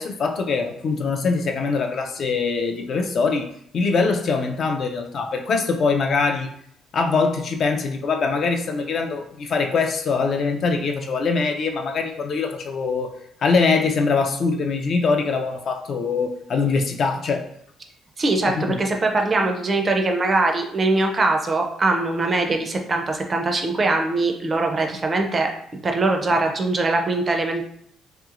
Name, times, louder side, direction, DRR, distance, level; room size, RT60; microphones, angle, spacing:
voice 1, 0.0-3.5 3.7-6.5 6.9-13.1 13.4-17.4 18.4-18.8 26.3-26.4, left 4 dB, 45° left, 5 dB, 0.3 m, -23 dB
voice 2, 18.2-25.5 25.8-27.6, right 2 dB, 25° right, 3 dB, 0.4 m, -22 dB
3.0 x 2.9 x 2.4 m, 0.68 s
cardioid pair, 145°, 0 cm